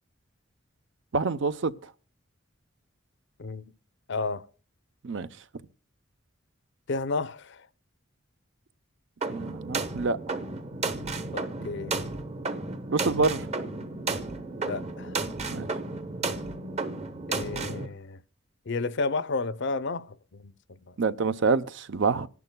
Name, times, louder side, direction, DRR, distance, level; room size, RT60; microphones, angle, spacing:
voice 1, 1.1-1.7 5.0-5.3 9.3-10.2 12.9-13.5 15.5-15.7 21.0-22.3, right 4 dB, 65° right, 0.6 m, -26 dB
voice 2, 3.4-3.7 4.1-4.5 6.9-7.7 11.3-12.0 14.6-15.2 17.3-18.2 18.7-20.9, left 3 dB, 60° left, 0.6 m, -32 dB
sound 1, 9.2-17.9, right 3 dB, 35° right, 0.9 m, -33 dB
26.0 x 11.0 x 2.2 m
head